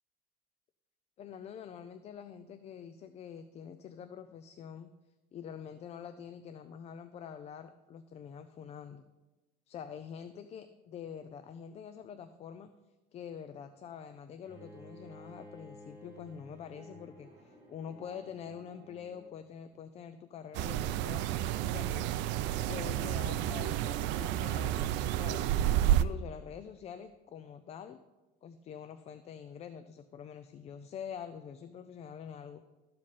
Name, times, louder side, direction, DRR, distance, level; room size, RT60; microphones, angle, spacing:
voice 1, 1.2-4.9 5.3-9.0 9.7-12.7 13.1-21.2 21.6-22.1 22.7-25.5 25.8-28.0 28.4-32.6, left 8 dB, 35° left, 10 dB, 0.5 m, -46 dB
Bowed string instrument, 14.4-19.5, equal, 15° right, 3.4 m, -53 dB
sound 1, 20.5-26.0, right 12 dB, 80° right, 0.5 m, -30 dB
13.0 x 7.5 x 4.1 m, 1.1 s
cardioid pair, 160°, 18 cm